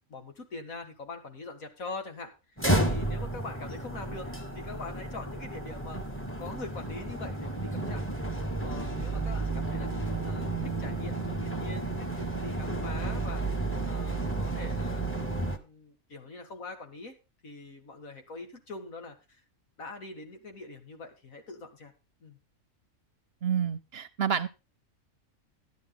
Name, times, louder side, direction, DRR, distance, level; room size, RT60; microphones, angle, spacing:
voice 1, 0.1-2.3 2.7-8.0 8.6-9.9 10.2-13.4 13.8-15.1 15.6-17.2 17.4-19.4 19.8-21.9 22.2-22.4, left 3 dB, 90° left, 2.4 m, -43 dB
sound 1, 2.6-15.6, right 2 dB, 10° left, 1.2 m, -32 dB
voice 2, 23.4-24.5, right 8 dB, 55° right, 0.9 m, -29 dB
12.5 x 10.5 x 3.8 m
omnidirectional pair, 1.4 m